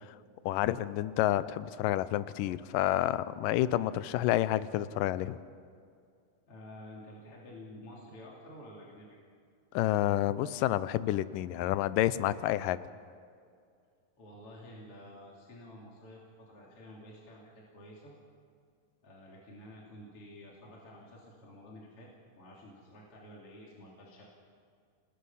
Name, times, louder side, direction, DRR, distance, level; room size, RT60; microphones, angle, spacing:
voice 1, 0.5-5.4 9.7-12.8, left 14 dB, 80° left, 15 dB, 2.2 m, -29 dB
voice 2, 6.5-9.2 14.2-18.1 19.0-22.1 22.4-24.3, left 1 dB, 40° left, -3 dB, 3.6 m, -50 dB
28.5 x 20.0 x 5.7 m, 2.3 s
omnidirectional pair, 4.1 m